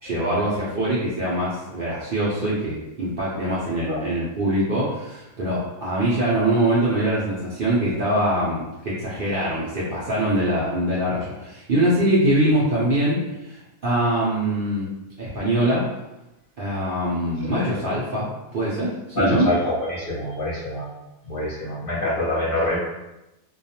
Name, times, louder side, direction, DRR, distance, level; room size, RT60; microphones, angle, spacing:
voice 1, 0.0-14.9 15.2-15.8 16.6-19.5, right 1 dB, 70° right, -8 dB, 0.5 m, -23 dB
voice 2, 19.1-20.8 21.2-22.8, left 1 dB, 45° left, -8 dB, 0.7 m, -25 dB
2.4 x 2.2 x 2.8 m, 0.97 s
omnidirectional pair, 1.6 m